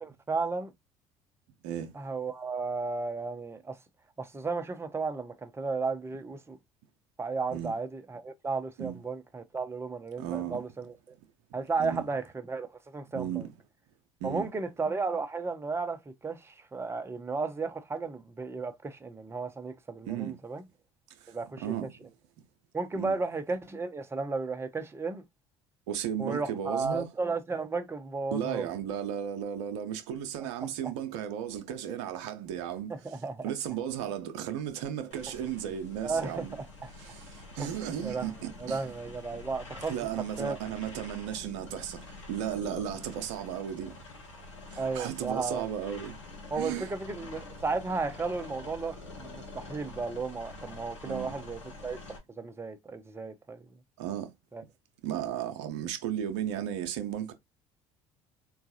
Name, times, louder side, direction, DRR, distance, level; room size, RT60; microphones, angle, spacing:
voice 1, 0.0-0.7 1.9-3.8 4.2-6.6 7.2-10.9 11.5-13.3 14.2-20.6 21.3-21.8 22.7-25.2 26.2-28.7 30.4-30.5 30.8-30.9 32.9-33.5 36.0-36.9 37.6-37.7 38.0-38.3 38.6-39.9 40.4-40.6 44.8-45.6 46.5-52.0 52.4-53.7 54.5-54.6, right 4 dB, 15° right, 0.7 m, -34 dB
voice 2, 1.6-1.9 7.5-7.7 8.8-8.9 10.2-10.6 11.8-12.0 13.1-13.5 14.2-14.5 20.1-20.3 21.2-21.3 21.6-22.1 23.0-23.2 25.9-27.1 28.3-33.2 33.4-36.5 37.0-38.8 39.9-43.9 44.7-46.2 46.6-46.9 51.0-51.4 54.0-54.3 55.0-57.3, right 10 dB, 70° right, 0.7 m, -35 dB
sound 1, 35.1-52.2, left 2 dB, 85° left, 0.9 m, -46 dB
3.8 x 2.3 x 2.7 m
hypercardioid pair, 60°, 15 cm